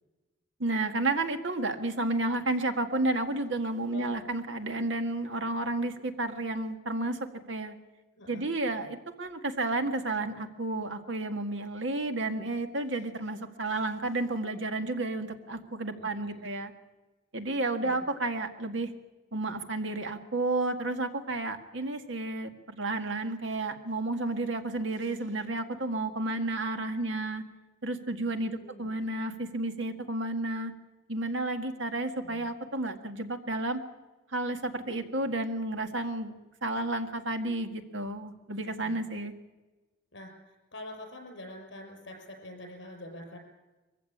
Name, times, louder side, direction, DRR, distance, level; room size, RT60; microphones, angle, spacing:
voice 1, 0.6-7.2 7.5-7.8 8.3-16.7 17.3-18.9 19.3-27.4 27.8-30.7 31.1-33.8 34.3-36.3 36.6-39.3, right 2 dB, 70° right, 6 dB, 1.9 m, -31 dB
voice 2, 8.2-8.8 15.9-16.5 17.8-18.0 28.4-28.9 32.2-32.5 38.7-39.0 40.1-43.4, left 1 dB, 65° left, 3 dB, 6.2 m, -46 dB
22.5 x 15.5 x 8.7 m, 1.2 s
head